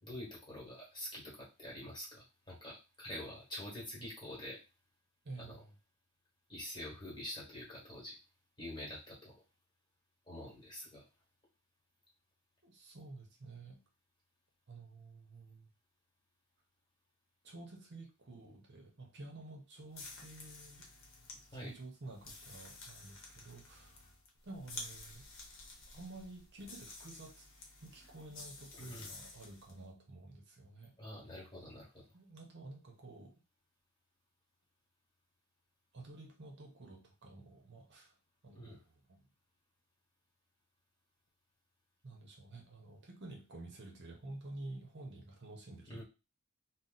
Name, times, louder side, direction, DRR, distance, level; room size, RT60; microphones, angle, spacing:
voice 1, 0.0-4.6 5.4-5.6 6.5-8.2 8.6-9.4 10.3-11.0 21.5-21.7 28.8-29.1 31.0-32.0 38.5-38.8 45.9-46.0, left 1 dB, 20° left, -5 dB, 1.3 m, -46 dB
voice 2, 5.2-5.7 12.6-13.8 14.7-15.7 17.4-20.9 21.3-24.1 24.4-25.3 25.9-27.5 27.8-31.0 32.1-33.3 35.9-38.1 38.4-39.2 42.0-46.0, right 2 dB, 50° right, 1 dB, 0.7 m, -51 dB
sound 1, 19.9-29.8, left 3 dB, 60° left, 0.9 m, -52 dB
2.7 x 2.1 x 3.8 m, 0.28 s
head